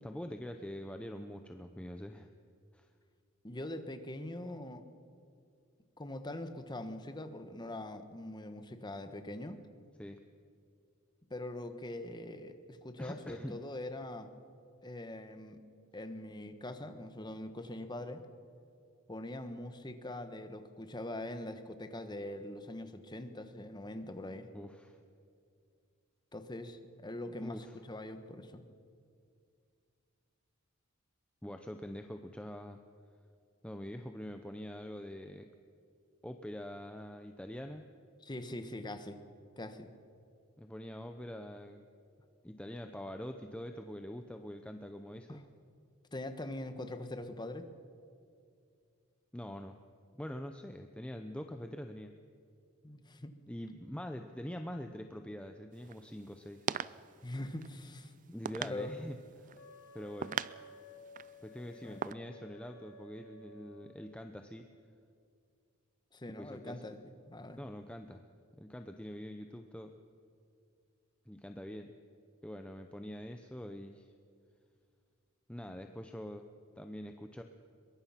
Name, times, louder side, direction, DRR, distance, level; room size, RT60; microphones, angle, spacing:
voice 1, 0.0-2.3 2.7-2.9 10.0-10.2 13.0-13.6 24.5-25.0 27.3-27.8 31.4-32.8 33.6-35.5 36.2-37.8 40.6-41.9 42.4-45.4 49.3-49.8 50.2-52.1 53.5-56.7 58.3-59.6 59.9-60.4 61.4-64.7 66.3-66.9 67.6-68.2 68.6-69.9 71.3-71.9 72.4-74.1 75.5-76.5 76.8-77.4, equal, 5° left, 6 dB, 0.7 m, -44 dB
voice 2, 3.4-4.8 6.0-9.6 11.3-14.3 14.8-15.6 15.9-18.2 19.1-24.5 26.3-28.6 38.2-39.2 39.6-39.9 45.3-45.4 46.1-47.7 52.8-53.3 57.2-58.9 61.8-62.0 66.1-67.0 67.3-67.6, left 1 dB, 20° left, 9 dB, 1.3 m, -43 dB
sound 1, 55.7-62.1, right 7 dB, 40° right, 0.4 m, -42 dB
Wind instrument woodwind instrument, 59.5-64.0, left 2 dB, 65° left, 4.5 m, -55 dB
22.5 x 22.0 x 5.8 m, 2.3 s
head